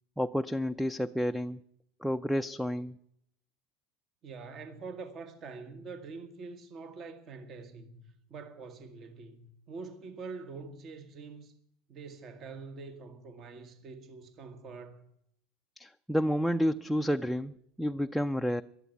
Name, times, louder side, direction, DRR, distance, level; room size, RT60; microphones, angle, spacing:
voice 1, 0.2-1.6 2.0-3.0 15.8-18.6, equal, ahead, 0.5 m, -30 dB
voice 2, 4.2-11.5 11.9-15.0, right 4 dB, 45° right, 1.5 m, -45 dB
12.5 x 11.0 x 9.2 m
supercardioid pair, 100°, 0 cm